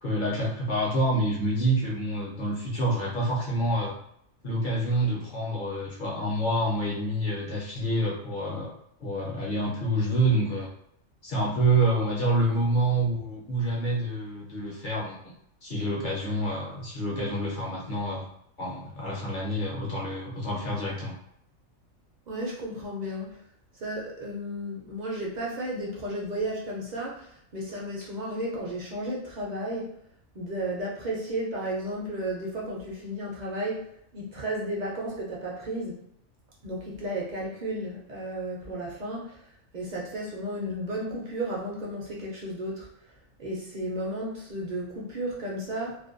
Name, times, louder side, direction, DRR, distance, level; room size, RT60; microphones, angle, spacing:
voice 1, 0.0-4.0 4.4-8.7 9.0-10.7 11.2-15.3 15.6-18.3 18.6-21.1, right 1 dB, 50° left, -4 dB, 0.6 m, -27 dB
voice 2, 22.3-23.4 23.7-30.0 30.3-36.0 36.6-39.5 39.7-42.9 43.4-46.0, right 1 dB, 55° right, -3 dB, 0.5 m, -33 dB
2.5 x 2.2 x 2.4 m, 0.71 s
omnidirectional pair, 1.4 m